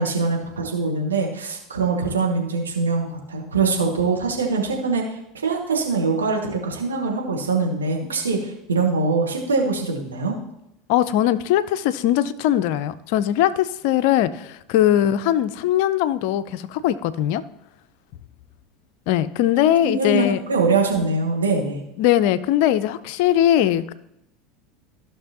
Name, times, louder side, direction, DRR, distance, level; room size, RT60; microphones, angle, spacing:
voice 1, 0.0-5.0 5.4-10.3 19.8-21.8, right 4 dB, 80° right, 0 dB, 1.7 m, -23 dB
voice 2, 10.9-17.4 19.1-20.4 22.0-23.9, left 12 dB, 60° left, 15 dB, 0.5 m, -20 dB
15.0 x 6.0 x 2.9 m, 0.83 s
figure-of-eight pair, 75°, 0 cm